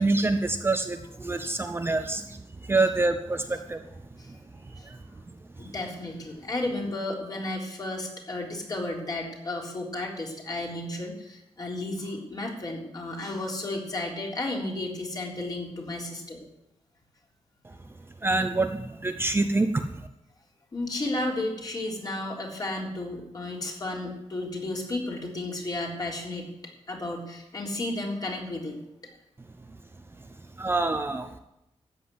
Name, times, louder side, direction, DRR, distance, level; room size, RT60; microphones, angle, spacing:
voice 1, 0.0-3.8 4.8-5.0 17.6-17.7 18.2-20.1 30.6-31.4, right 2 dB, 20° right, 6 dB, 0.7 m, -26 dB
voice 2, 5.6-16.4 20.7-26.5 26.9-28.8, left 2 dB, 35° left, -1 dB, 3.6 m, -33 dB
13.5 x 8.2 x 9.6 m, 0.88 s
wide cardioid pair, 160°, 11 cm